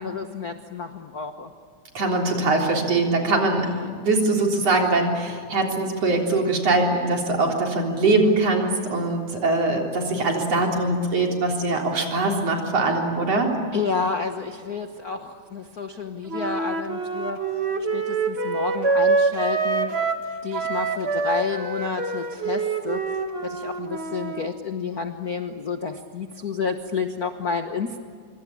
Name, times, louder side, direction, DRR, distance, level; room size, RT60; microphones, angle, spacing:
voice 1, 0.0-1.5 3.6-3.9 13.7-17.4 17.9-20.1 20.4-28.0, left 5 dB, 90° left, 6 dB, 0.8 m, -30 dB
voice 2, 1.9-3.7 4.0-13.5, right 2 dB, 50° right, 1 dB, 4.7 m, -22 dB
Wind instrument woodwind instrument, 16.3-20.3 20.5-24.5, right 4 dB, 30° right, 1.1 m, -25 dB
26.5 x 24.5 x 8.6 m, 2.1 s
omnidirectional pair, 3.5 m